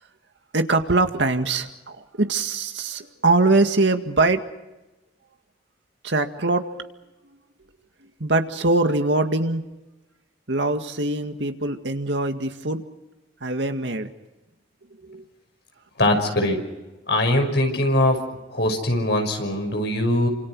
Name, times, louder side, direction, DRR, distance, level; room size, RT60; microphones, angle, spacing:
voice 1, 0.5-4.4 6.0-6.7 8.2-9.6 10.5-12.8 13.4-14.1 15.1-15.2, right 2 dB, 75° right, 6 dB, 2.0 m, -22 dB
voice 2, 16.0-16.6 17.1-18.2 18.5-20.3, left 1 dB, 65° left, 4 dB, 5.9 m, -21 dB
29.5 x 26.5 x 4.8 m, 1.0 s
head